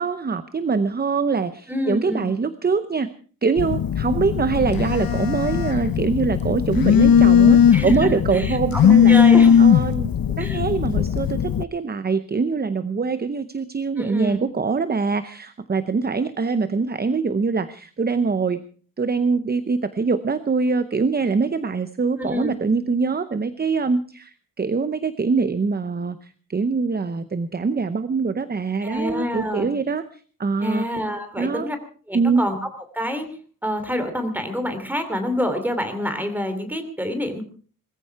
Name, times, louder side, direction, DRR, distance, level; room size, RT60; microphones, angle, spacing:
voice 1, 0.0-3.1 3.4-9.2 9.6-10.1 10.4-18.6 19.0-30.9 31.4-31.7 32.1-32.4, right 4 dB, 30° right, 12 dB, 0.7 m, -23 dB
voice 2, 1.7-2.3 7.7-8.8 9.1-9.7 10.4-10.6 14.0-14.4 22.2-22.5 28.8-29.7 30.6-31.8 32.1-32.5 32.9-33.3 33.6-37.4, left 1 dB, 5° right, 7 dB, 3.0 m, -27 dB
Telephone, 3.6-11.6, left 8 dB, 80° left, 0.8 m, -17 dB
20.5 x 14.5 x 4.7 m, 0.42 s
wide cardioid pair, 175°, 34 cm